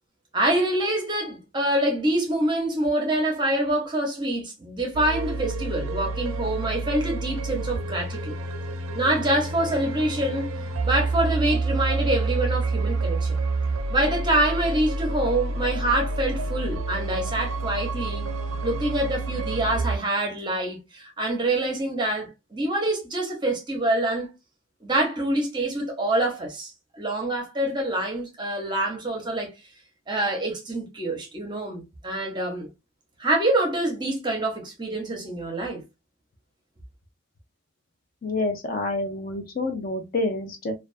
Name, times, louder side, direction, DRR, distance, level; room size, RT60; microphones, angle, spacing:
voice 1, 0.3-8.4 8.9-10.5 10.8-13.4 13.9-18.2 18.6-24.3 24.8-29.5 30.1-32.7 33.2-35.8, right 1 dB, 20° right, 0.7 m, -26 dB
sound 1, 4.9-20.0, right 3 dB, 80° right, 0.4 m, -28 dB
voice 2, 38.2-40.7, left 2 dB, 40° left, 0.4 m, -28 dB
2.3 x 2.2 x 2.3 m
head